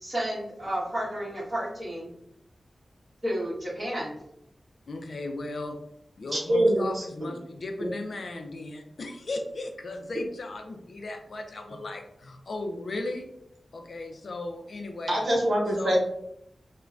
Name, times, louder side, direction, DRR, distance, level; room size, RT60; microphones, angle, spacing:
voice 1, 0.0-2.1 3.2-4.1, equal, 25° right, -7 dB, 1.3 m, -31 dB
voice 2, 4.9-5.8 6.2-13.3 13.7-15.3 15.7-16.0, left 2 dB, 60° left, 4 dB, 0.4 m, -36 dB
voice 3, 6.3-7.0 7.8-7.9 15.1-16.0, right 1 dB, 70° right, -2 dB, 0.7 m, -24 dB
3.2 x 2.1 x 2.4 m, 0.76 s
wide cardioid pair, 120°, 0 cm